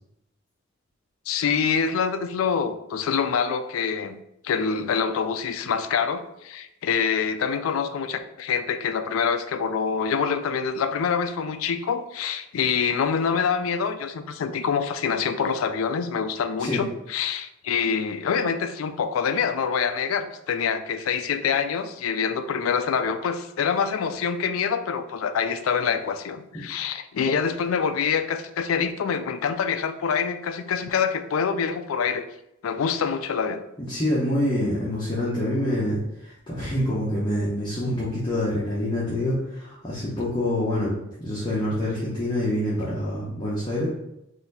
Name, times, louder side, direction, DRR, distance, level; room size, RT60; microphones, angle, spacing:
voice 1, 1.3-4.2 4.4-32.3 32.6-33.6, left 6 dB, 80° left, 9 dB, 0.4 m, -25 dB
voice 2, 33.8-40.9 41.2-43.9, left 1 dB, 25° left, -8 dB, 0.9 m, -26 dB
4.1 x 2.6 x 4.0 m, 0.84 s
head